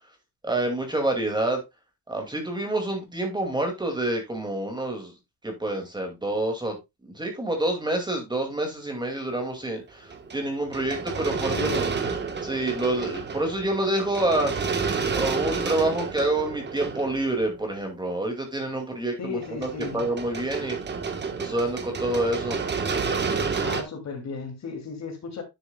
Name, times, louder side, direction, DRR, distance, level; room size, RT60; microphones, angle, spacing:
voice 1, 0.4-1.6 2.1-5.1 5.4-6.8 7.0-11.9 12.4-14.5 15.1-20.8 21.4-22.6, right 1 dB, 10° right, 2.3 m, -27 dB
sound 1, 10.1-18.0 19.4-23.8, right 5 dB, 25° right, 1.3 m, -30 dB
voice 2, 11.3-11.9 19.2-20.1 23.6-25.4, left 5 dB, 40° left, 2.8 m, -34 dB
10.5 x 6.9 x 2.3 m
cardioid pair, 170°, 41 cm